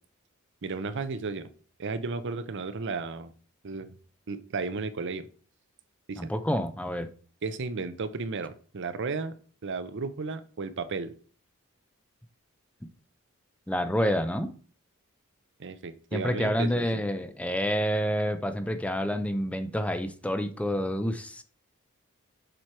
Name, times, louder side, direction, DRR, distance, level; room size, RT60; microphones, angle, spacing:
voice 1, 0.6-1.5 1.8-3.3 3.6-3.9 4.3-5.3 6.1-6.3 7.4-9.3 9.6-11.1 15.6-16.9, right 4 dB, 55° right, 0.6 m, -34 dB
voice 2, 6.2-7.1 13.7-14.5 16.1-21.4, equal, 5° left, 0.5 m, -28 dB
7.7 x 4.5 x 4.5 m
head